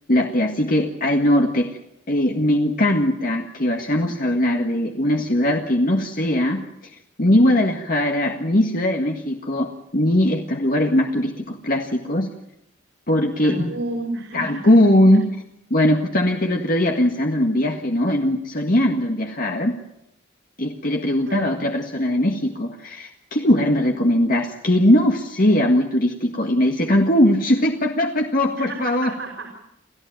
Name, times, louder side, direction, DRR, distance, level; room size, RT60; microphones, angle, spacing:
voice 1, 0.1-1.7 2.1-6.6 7.2-12.3 13.1-13.7 14.3-15.3 15.7-19.8 20.6-29.1, left 1 dB, 45° left, 2 dB, 1.8 m, -20 dB
voice 2, 13.4-14.8 15.1-15.2 21.3-21.7 28.5-29.6, right 2 dB, 70° right, 1 dB, 5.5 m, -31 dB
29.0 x 15.0 x 9.1 m, 0.82 s
head